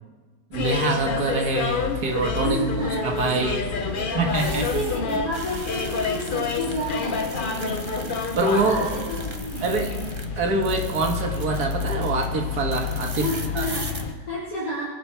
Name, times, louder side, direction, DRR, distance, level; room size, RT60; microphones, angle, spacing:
sound 1, 0.5-14.1, left 5 dB, 40° left, 0.8 m, -29 dB
voice 1, 0.5-2.6 3.0-3.6 4.1-4.7 8.3-8.8 9.6-9.9 10.4-13.7, right 3 dB, 65° right, 2 dB, 2.1 m, -25 dB
voice 2, 2.4-3.0 3.9-8.0 8.6-10.1 13.2-14.8, equal, 55° left, -10 dB, 4.1 m, -31 dB
sound 2, 3.0-10.3 10.6-12.3 12.7-14.0, right 3 dB, 20° right, 0.8 m, -40 dB
23.5 x 8.5 x 4.6 m, 1.4 s
omnidirectional pair, 1.8 m